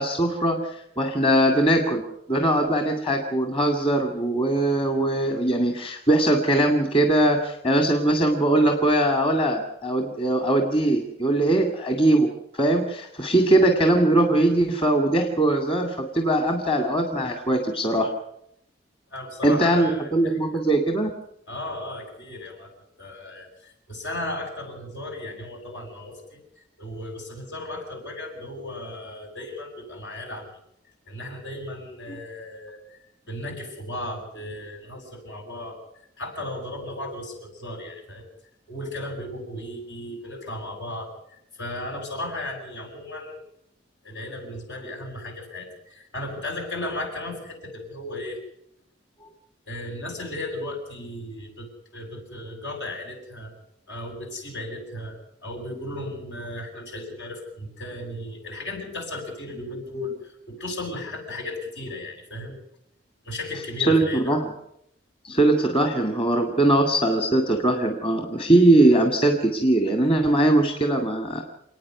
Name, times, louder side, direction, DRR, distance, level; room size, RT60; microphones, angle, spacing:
voice 1, 0.0-2.0 2.3-12.3 12.5-18.1 19.4-21.1 63.8-64.5 65.2-71.4, right 1 dB, 30° left, 4 dB, 2.2 m, -21 dB
voice 2, 19.1-20.4 21.5-22.7 23.0-26.4 26.8-30.5 31.1-33.0 33.3-35.8 36.2-38.2 38.7-43.4 44.0-48.4 49.7-53.5 53.9-55.1 55.4-62.6 63.2-64.3, left 1 dB, 75° left, 1 dB, 7.9 m, -35 dB
28.5 x 9.6 x 9.6 m, 0.75 s
head